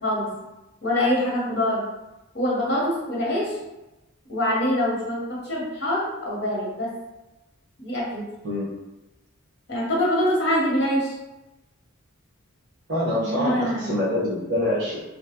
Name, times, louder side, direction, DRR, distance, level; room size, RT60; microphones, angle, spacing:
voice 1, 0.8-1.8 2.3-3.6 4.3-6.9 7.8-8.2 9.7-11.1 13.2-14.1, left 1 dB, 50° left, -5 dB, 1.1 m, -24 dB
voice 2, 12.9-15.0, left 1 dB, 55° right, -10 dB, 1.2 m, -25 dB
3.3 x 2.3 x 2.8 m, 1.0 s
head